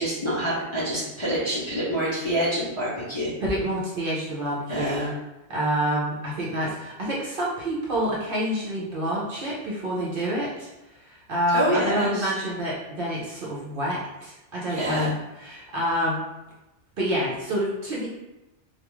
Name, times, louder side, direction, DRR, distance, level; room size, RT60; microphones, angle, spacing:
voice 1, 0.0-3.3 4.7-5.1 11.5-12.3 14.7-15.1, right 1 dB, 35° left, -9 dB, 0.6 m, -26 dB
voice 2, 3.4-5.0 5.5-10.7 11.0-15.1 15.4-16.2 17.0-18.1, equal, 60° right, -5 dB, 0.7 m, -27 dB
2.3 x 2.3 x 2.9 m, 0.98 s
omnidirectional pair, 1.2 m